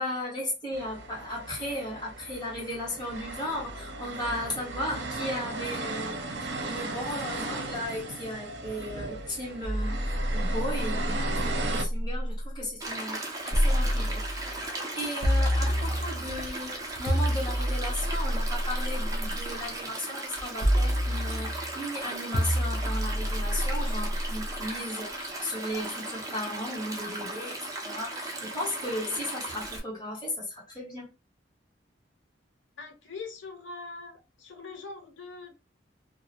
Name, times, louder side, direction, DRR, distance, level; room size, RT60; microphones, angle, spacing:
voice 1, 0.0-6.2 6.6-31.1, left 1 dB, 25° left, 1.4 m, -36 dB
sound 1, 0.7-11.8, right 2 dB, 70° right, 0.7 m, -36 dB
sound 2, 9.6-12.4 13.5-14.6 15.2-16.3 17.1-19.3 20.6-21.7 22.3-24.5, equal, 45° left, 0.8 m, -27 dB
Stream, 12.8-29.8, right 2 dB, 20° right, 0.7 m, -37 dB
voice 2, 32.8-35.5, left 3 dB, 85° left, 0.7 m, -42 dB
2.7 x 2.4 x 2.8 m
head